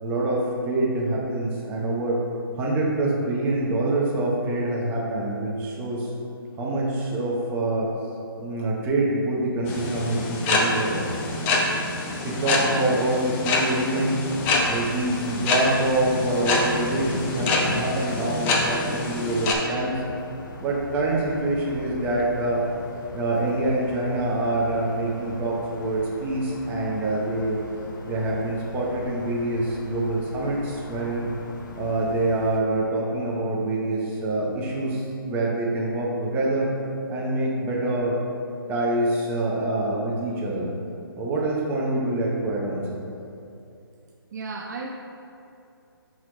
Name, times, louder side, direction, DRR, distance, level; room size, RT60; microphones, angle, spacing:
voice 1, 0.0-2.2 2.5-6.1 6.6-7.9 8.4-11.1 12.2-20.0 20.6-22.7 23.1-27.6 28.0-31.3 31.7-36.7 37.1-38.2 38.7-40.7 41.1-43.1, right 2 dB, 15° right, -4 dB, 0.8 m, -25 dB
sound 1, 9.7-19.5, left 2 dB, 15° left, 0.4 m, -26 dB
sound 2, 14.2-32.6, left 2 dB, 55° left, 0.7 m, -41 dB
voice 2, 44.3-44.9, right 4 dB, 50° right, 1 dB, 0.4 m, -34 dB
4.8 x 4.1 x 4.9 m, 2.7 s
hypercardioid pair, 150°, 12 cm